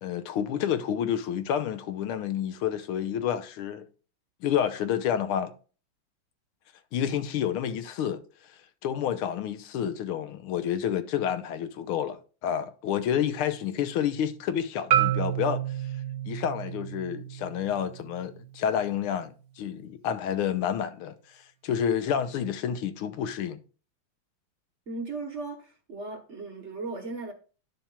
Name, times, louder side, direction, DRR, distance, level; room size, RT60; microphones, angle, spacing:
voice 1, 0.0-3.8 4.4-5.5 6.9-8.5 8.8-15.6 16.2-23.6, left 9 dB, 90° left, 1.7 m, -29 dB
Marimba xylophone, 14.9-19.1, right 12 dB, 80° right, 1.4 m, -30 dB
voice 2, 24.9-27.3, right 3 dB, 40° right, 1.2 m, -37 dB
10.5 x 7.2 x 2.4 m
omnidirectional pair, 2.3 m